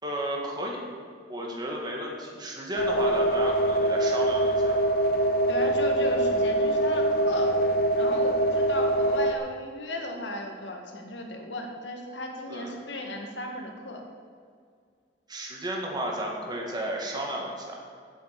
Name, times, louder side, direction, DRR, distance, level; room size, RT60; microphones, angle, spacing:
voice 1, 0.0-0.8 1.3-4.8 12.5-12.7 15.3-17.8, right 1 dB, 25° right, -1 dB, 2.1 m, -33 dB
sound 1, 2.8-9.4, right 1 dB, 55° left, 0.9 m, -24 dB
voice 2, 5.5-7.6 7.9-14.0, left 1 dB, 85° left, 2 dB, 1.9 m, -35 dB
9.4 x 7.6 x 8.4 m, 2.1 s
head